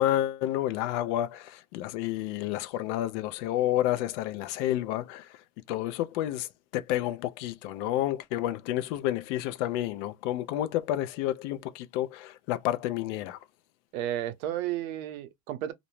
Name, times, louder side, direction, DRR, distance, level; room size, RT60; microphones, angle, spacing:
voice 1, 0.0-5.4 5.7-13.4, left 13 dB, 55° left, 0.5 m, -30 dB
voice 2, 13.9-15.7, right 12 dB, 70° right, 0.7 m, -32 dB
2.5 x 2.0 x 2.9 m
supercardioid pair, 130°, 43 cm